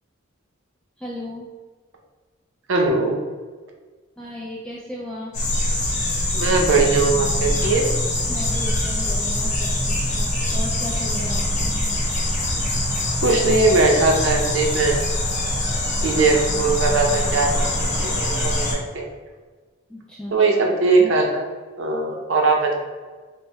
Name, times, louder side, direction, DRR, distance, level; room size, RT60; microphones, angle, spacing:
voice 1, 1.0-1.5 4.2-5.3 8.3-11.7 19.9-20.3, left 1 dB, 5° left, -6 dB, 0.3 m, -35 dB
voice 2, 2.7-3.2 6.3-7.9 13.2-15.0 16.0-17.5 17.8-19.0 20.3-21.4 21.8-22.7, right 3 dB, 70° right, 1 dB, 0.6 m, -20 dB
sound 1, 5.3-18.7, left 1 dB, 35° left, 0.9 m, -23 dB
4.5 x 2.1 x 3.4 m, 1.4 s
head